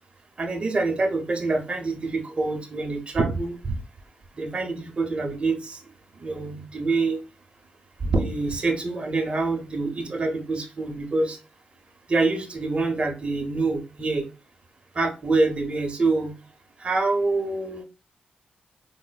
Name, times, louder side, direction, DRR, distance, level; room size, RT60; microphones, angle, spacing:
voice 1, 0.4-3.8 4.4-5.8 6.2-7.2 8.0-11.4 12.1-14.3 14.9-16.3 16.8-17.8, right 3 dB, 40° right, 3 dB, 0.7 m, -26 dB
4.1 x 2.0 x 2.2 m, 0.31 s
cardioid pair, 70°, 3 cm